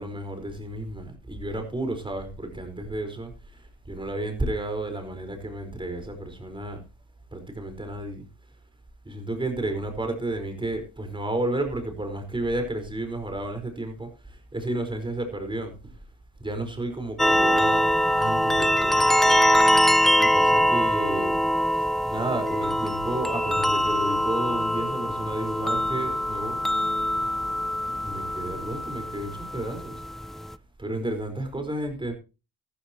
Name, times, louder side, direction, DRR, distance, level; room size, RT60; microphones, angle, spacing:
voice 1, 0.0-6.8 7.3-8.3 9.0-16.0 16.4-17.9 18.2-19.5 20.2-21.4 21.7-26.7 27.9-30.4 30.8-32.1, right 1 dB, 15° right, 4.7 m, -32 dB
sound 1, 17.2-30.5, equal, ahead, 0.5 m, -23 dB
14.0 x 13.5 x 3.0 m
cardioid pair, 90°, 30 cm